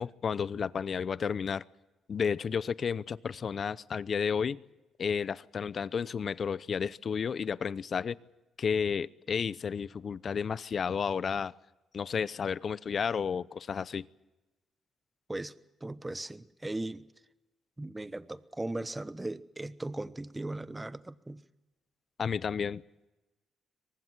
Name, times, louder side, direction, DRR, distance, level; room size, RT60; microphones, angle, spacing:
voice 1, 0.0-1.6 2.1-4.6 5.0-8.2 8.6-11.5 11.9-14.1 22.2-22.8, left 6 dB, 50° left, 0.7 m, -32 dB
voice 2, 15.8-17.0 17.8-21.4, right 2 dB, 15° right, 1.1 m, -38 dB
24.0 x 20.0 x 7.5 m
cardioid pair, 90°, 0 cm